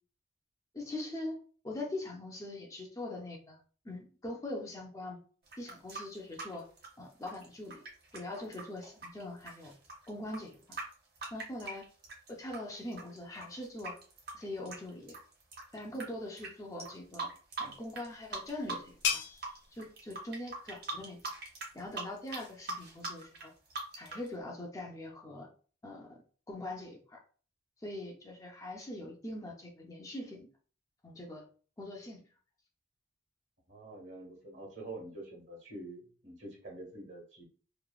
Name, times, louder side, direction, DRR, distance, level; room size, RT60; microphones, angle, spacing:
voice 1, 0.7-3.6 3.8-5.2 5.6-6.7 7.0-7.8 8.1-9.7 10.1-10.8 11.3-11.8 12.3-14.0 14.3-15.1 15.7-17.3 17.6-19.2 19.7-21.3 21.7-23.5 24.0-25.5 25.8-26.2 26.5-27.2 27.8-30.5 31.0-31.5 31.8-32.2, left 1 dB, 15° left, 0 dB, 0.4 m, -42 dB
sound 1, 5.5-12.6 12.9-16.0 16.4-16.5 16.8-18.1 18.3-19.1 19.4-24.3, right 3 dB, 55° right, 0.9 m, -41 dB
sound 2, 17.7-23.1, left 7 dB, 85° left, 0.5 m, -41 dB
voice 2, 33.7-37.4, right 2 dB, 70° right, 0 dB, 1.3 m, -46 dB
3.0 x 2.1 x 2.3 m, 0.40 s
head